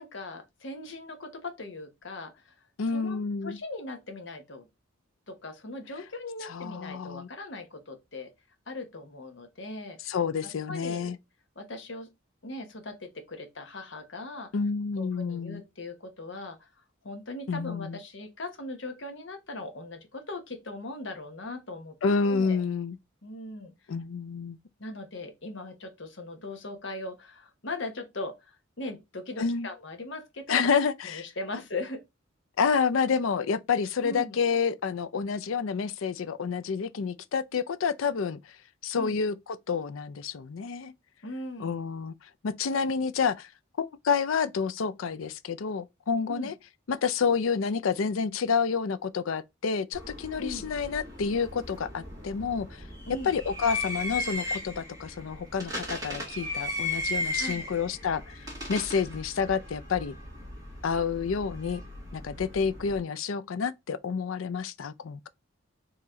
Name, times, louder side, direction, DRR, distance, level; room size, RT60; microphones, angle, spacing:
voice 1, 0.0-2.5 2.9-4.7 5.3-8.3 8.7-10.1 10.7-11.1 11.6-12.1 12.4-14.5 15.0-16.7 17.0-21.9 22.2-22.6 23.2-23.7 24.8-32.0 34.0-34.4 38.9-39.2 41.2-41.8 46.3-46.5 50.4-50.6 53.1-53.3 57.4-57.7, left 2 dB, 65° left, 1.2 m, -39 dB
voice 2, 2.8-3.6 6.4-7.3 10.1-11.2 14.5-15.6 17.5-18.0 22.0-23.0 23.9-24.6 29.4-29.7 30.5-31.2 32.6-38.5 38.8-40.9 41.6-42.1 42.4-43.5 43.8-46.5 46.9-52.8 53.2-60.2 60.8-61.8 62.1-65.3, left 5 dB, 90° left, 0.5 m, -29 dB
sound 1, 49.9-63.0, left 1 dB, 20° right, 2.1 m, -37 dB
4.7 x 3.1 x 3.7 m
head